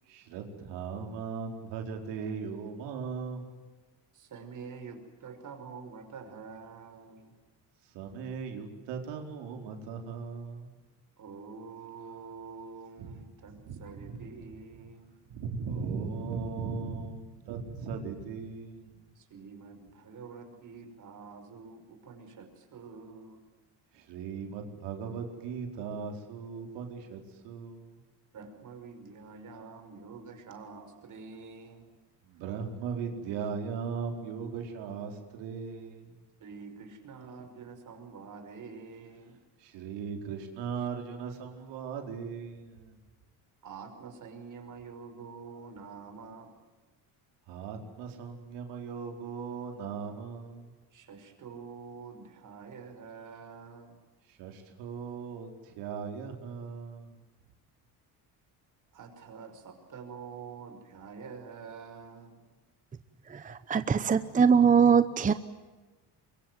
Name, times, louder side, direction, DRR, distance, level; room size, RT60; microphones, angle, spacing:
voice 1, 0.1-3.5 7.9-10.7 13.0-13.1 13.6-14.2 15.3-19.1 23.9-27.9 32.2-36.2 39.6-43.0 47.5-50.7 54.3-57.2, right 5 dB, 90° right, 3 dB, 4.6 m, -38 dB
voice 2, 4.1-7.4 11.2-15.2 19.2-23.4 28.3-31.9 36.4-39.4 43.6-46.5 50.9-54.0 58.9-62.5, right 5 dB, 50° right, 7 dB, 5.6 m, -47 dB
voice 3, 63.3-65.3, right 6 dB, 20° right, 12 dB, 0.9 m, -22 dB
24.0 x 23.0 x 9.4 m, 1.2 s
cardioid pair, 120°, 41 cm